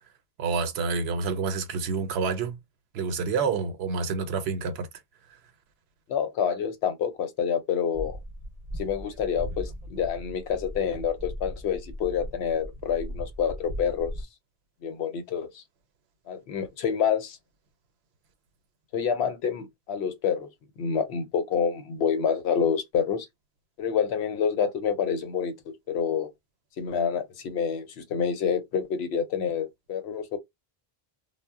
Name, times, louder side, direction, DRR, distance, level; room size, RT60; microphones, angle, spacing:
voice 1, 0.4-2.6 2.9-4.9, right 5 dB, 90° right, 0.9 m, -28 dB
voice 2, 6.1-8.2 8.8-14.1 14.8-15.6 16.3-17.4 18.9-20.5 20.8-23.3 23.8-25.5 25.9-26.3 26.8-30.4, left 7 dB, 85° left, 0.9 m, -27 dB
sound 1, 7.9-14.3, equal, 45° right, 0.6 m, -38 dB
2.1 x 2.0 x 3.4 m
omnidirectional pair, 1.0 m